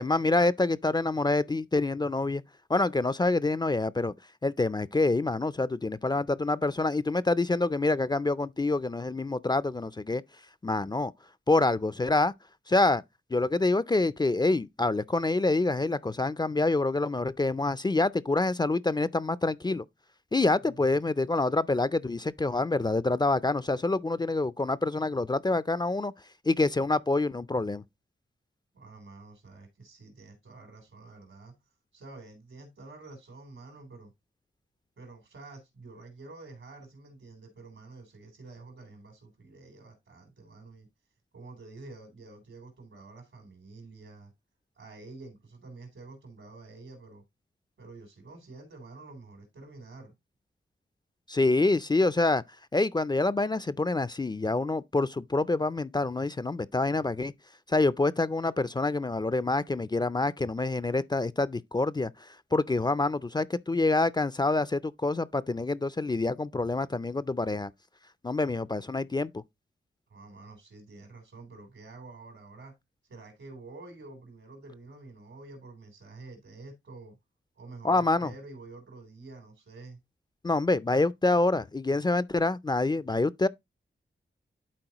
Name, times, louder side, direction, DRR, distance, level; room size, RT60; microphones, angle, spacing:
voice 1, 0.0-2.4 2.7-4.1 4.4-10.2 10.6-11.1 11.5-12.3 12.7-13.0 13.3-19.8 20.3-26.1 26.5-27.8 51.3-52.4 52.7-57.3 57.7-67.7 68.2-69.4 77.8-78.3 80.4-83.5, left 2 dB, 20° left, 0.4 m, -26 dB
voice 2, 28.7-31.5 31.9-34.1 35.0-40.9 41.3-44.3 44.8-47.2 47.8-50.1 70.1-72.7 73.1-77.2 77.6-80.0, right 3 dB, 85° right, 3.5 m, -48 dB
11.5 x 4.3 x 2.9 m
wide cardioid pair, 75°, 20 cm